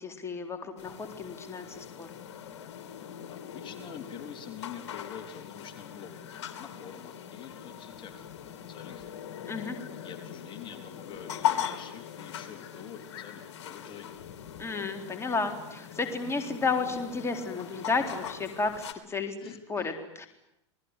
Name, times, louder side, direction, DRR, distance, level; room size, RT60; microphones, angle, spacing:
voice 1, 0.0-2.1 9.5-9.8 14.6-19.4 19.7-20.3, left 4 dB, 15° left, 5 dB, 3.9 m, -32 dB
sound 1, 0.8-18.9, left 9 dB, 70° left, 3.4 m, -40 dB
voice 2, 3.3-6.1 6.6-8.3 8.7-9.0 9.5-14.2 19.4-19.9, left 8 dB, 35° left, 6 dB, 3.8 m, -46 dB
29.5 x 20.0 x 9.8 m, 0.83 s
hypercardioid pair, 110°, 15 cm